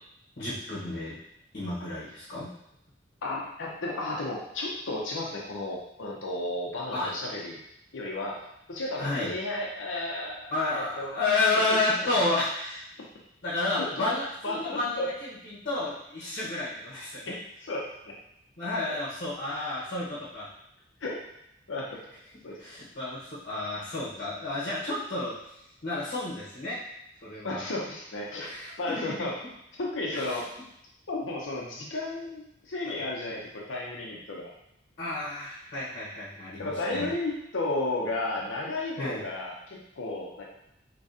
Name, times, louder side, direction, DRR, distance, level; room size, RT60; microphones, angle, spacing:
voice 1, 0.4-1.1 1.5-2.5 6.9-7.1 9.0-9.3 10.5-12.8 13.4-17.3 18.6-20.5 22.6-25.3 25.8-26.8 27.2-27.7 28.4-29.1 30.1-30.4 32.9-33.0 35.0-37.1 39.0-39.2, left 2 dB, 55° left, -8 dB, 1.2 m, -31 dB
voice 2, 3.2-7.6 7.9-8.4 8.7-11.1 13.8-13.9 14.4-15.1 17.3-17.4 17.6-18.1 21.0-21.2 21.7-21.9 22.4-22.6 27.4-29.3 29.8-30.4 31.1-34.5 36.6-40.5, left 2 dB, 85° left, -3 dB, 0.7 m, -33 dB
4.8 x 3.0 x 2.7 m, 0.79 s
head